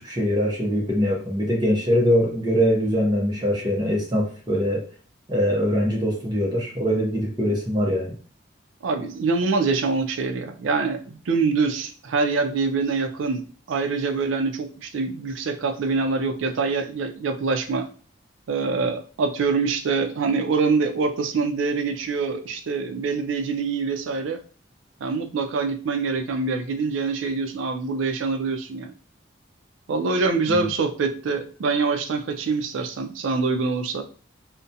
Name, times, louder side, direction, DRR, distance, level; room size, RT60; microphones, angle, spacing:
voice 1, 0.0-4.8 5.3-8.1 30.5-30.7, equal, 20° right, -2 dB, 0.6 m, -22 dB
voice 2, 8.8-17.9 18.5-24.4 25.0-28.9 29.9-34.0, right 4 dB, 75° right, 6 dB, 0.4 m, -25 dB
2.4 x 2.1 x 2.6 m, 0.41 s
head